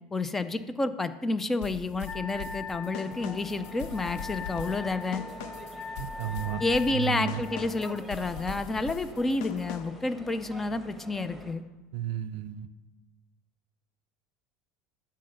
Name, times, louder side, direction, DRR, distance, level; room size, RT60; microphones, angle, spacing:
voice 1, 0.1-5.2 6.6-11.6, left 2 dB, 15° left, 12 dB, 0.4 m, -30 dB
sound 1, 1.6-10.1, left 8 dB, 75° left, 0.5 m, -42 dB
Wind instrument woodwind instrument, 2.1-7.7, left 4 dB, 35° left, 1.2 m, -41 dB
sound 2, 3.0-11.5, equal, 5° right, 1.3 m, -46 dB
voice 2, 6.0-6.6 6.9-7.4 11.9-12.7, right 11 dB, 70° right, 13 dB, 0.5 m, -33 dB
9.4 x 3.8 x 6.6 m, 1.1 s
supercardioid pair, 120°, 2 cm